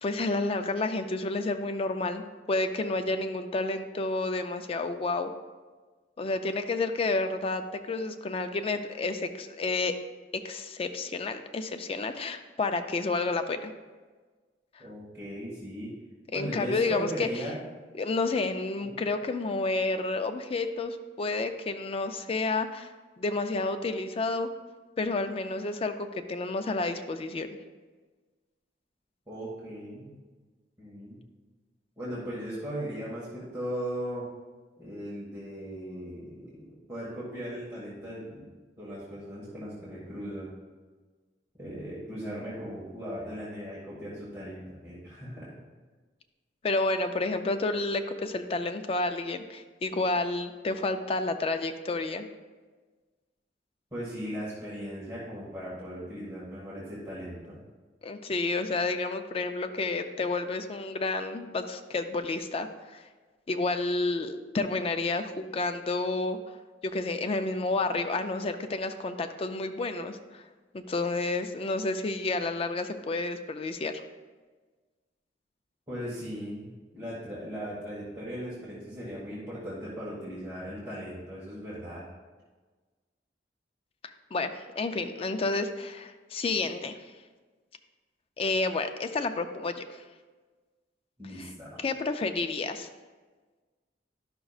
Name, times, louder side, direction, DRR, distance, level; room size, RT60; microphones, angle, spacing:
voice 1, 0.0-5.3 6.2-7.6 7.9-9.9 10.4-13.7 14.8-14.9 16.3-17.3 18.0-22.9 23.2-24.5 25.0-27.5 46.6-52.3 58.0-63.0 63.5-66.4 66.8-70.4 70.7-73.9 84.3-86.9 88.4-90.0 91.4-91.5 91.8-92.9, left 3 dB, 35° left, 8 dB, 0.4 m, -30 dB
voice 2, 14.8-15.9 16.3-17.6 18.8-19.0 29.3-30.1 30.8-31.2 32.0-34.3 34.8-38.4 38.8-40.5 41.6-45.6 53.9-57.6 75.9-82.0 91.2-91.8, equal, 15° right, -9 dB, 1.5 m, -38 dB
11.0 x 6.0 x 2.4 m, 1.4 s
head